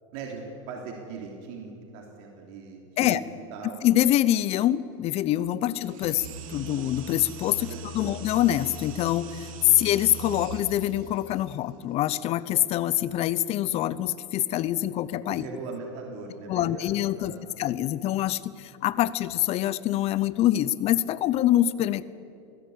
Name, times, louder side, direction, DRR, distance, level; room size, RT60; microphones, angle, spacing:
voice 1, 0.1-3.2 3.5-3.8 7.7-8.1 9.7-9.8 15.2-17.4, right 4 dB, 55° right, 0 dB, 3.4 m, -40 dB
voice 2, 3.8-15.5 16.5-22.0, left 13 dB, 35° left, 18 dB, 0.8 m, -25 dB
sound 1, 5.8-11.1, right 3 dB, 85° right, 2.2 m, -40 dB
21.0 x 16.0 x 8.1 m, 2.6 s
supercardioid pair, 125°, 17 cm